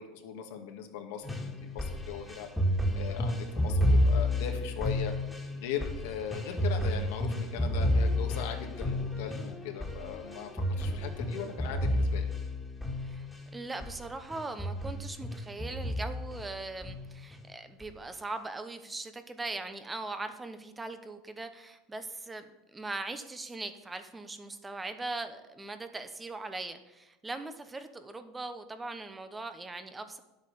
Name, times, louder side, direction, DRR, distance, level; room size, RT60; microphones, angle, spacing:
voice 1, 0.0-2.5 2.9-5.1 5.5-12.3, left 8 dB, 80° left, 4 dB, 1.9 m, -39 dB
sound 1, 1.2-13.4 13.8-14.0 14.3-16.4 16.8-17.4 17.8-17.9, left 1 dB, 5° left, 2.1 m, -30 dB
voice 2, 13.5-30.2, right 3 dB, 15° right, 9 dB, 1.0 m, -40 dB
10.5 x 8.1 x 6.8 m, 1.0 s
supercardioid pair, 120°, 0 cm